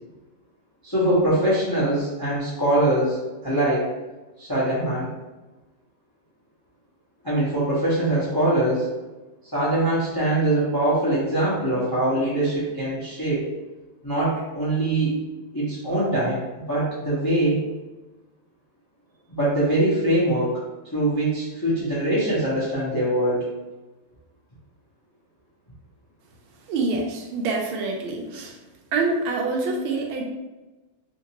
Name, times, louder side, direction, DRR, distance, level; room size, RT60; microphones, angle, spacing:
voice 1, 0.8-3.2 3.4-3.9 4.4-5.1 7.2-8.9 9.5-13.5 14.0-15.2 15.5-16.4 16.7-17.7 19.3-20.6 20.9-23.4, right 1 dB, 30° left, -9 dB, 0.4 m, -23 dB
voice 2, 26.7-28.6 28.9-30.2, right 3 dB, 85° right, 1 dB, 1.5 m, -26 dB
3.7 x 2.6 x 2.9 m, 1.1 s
omnidirectional pair, 2.3 m